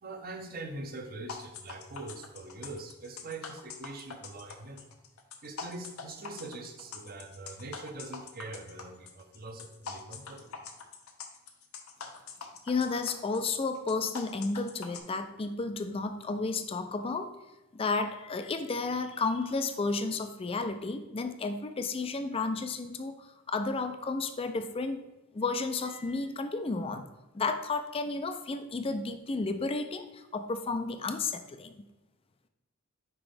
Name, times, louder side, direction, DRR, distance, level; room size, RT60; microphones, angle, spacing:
voice 1, 0.0-4.9 5.4-10.5, right 2 dB, 45° right, 5 dB, 0.7 m, -43 dB
sound 1, 1.3-15.0, left 5 dB, 75° left, 0.7 m, -44 dB
voice 2, 12.6-17.3 17.7-25.1 25.3-27.0 27.3-31.7, left 3 dB, 25° left, 8 dB, 0.4 m, -32 dB
5.9 x 4.9 x 3.3 m, 1.0 s
head